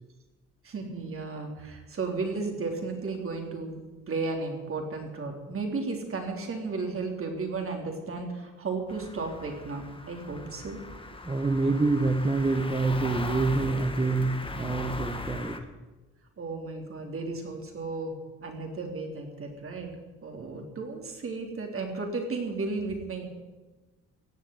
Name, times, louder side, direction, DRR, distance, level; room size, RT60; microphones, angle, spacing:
voice 1, 0.6-3.8 4.1-10.8 16.4-18.1 18.4-19.9 20.2-23.3, right 3 dB, 45° right, 2 dB, 3.7 m, -34 dB
sound 1, 8.9-15.6, left 2 dB, 15° left, 1.6 m, -38 dB
voice 2, 11.3-15.6, right 3 dB, 20° right, 6 dB, 1.1 m, -26 dB
17.0 x 7.6 x 9.3 m, 1.2 s
cardioid pair, 90°, 30 cm